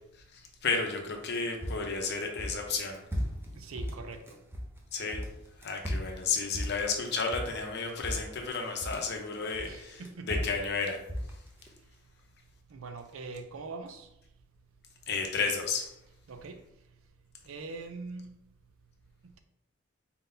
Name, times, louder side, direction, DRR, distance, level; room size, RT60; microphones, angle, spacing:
voice 1, 0.3-3.0 4.9-5.2 5.6-11.0 15.1-15.9, left 4 dB, 55° left, 0.8 m, -32 dB
sound 1, 1.2-4.8 5.1-7.7 8.0-9.1 9.5-11.7, equal, 10° right, 0.6 m, -36 dB
voice 2, 3.5-4.4 9.7-10.3 12.7-14.1 16.3-16.6 17.5-18.3, right 3 dB, 85° right, 0.5 m, -42 dB
4.3 x 3.8 x 2.7 m
head